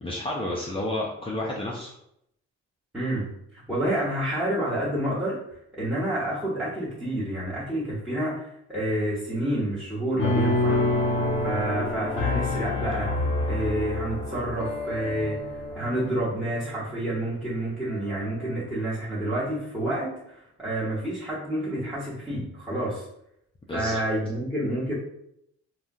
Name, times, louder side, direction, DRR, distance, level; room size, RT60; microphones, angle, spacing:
voice 1, 0.0-1.9 23.7-24.0, left 1 dB, 20° left, -4 dB, 0.5 m, -31 dB
voice 2, 2.9-3.3 3.7-5.4 5.7-10.8 11.4-15.4 15.7-23.1 23.7-24.9, right 1 dB, ahead, -9 dB, 1.0 m, -29 dB
sound 1, 10.2-17.4 17.9-18.5, left 2 dB, 90° left, 0.7 m, -28 dB
3.5 x 2.2 x 2.6 m, 0.77 s
cardioid pair, 90°, 30 cm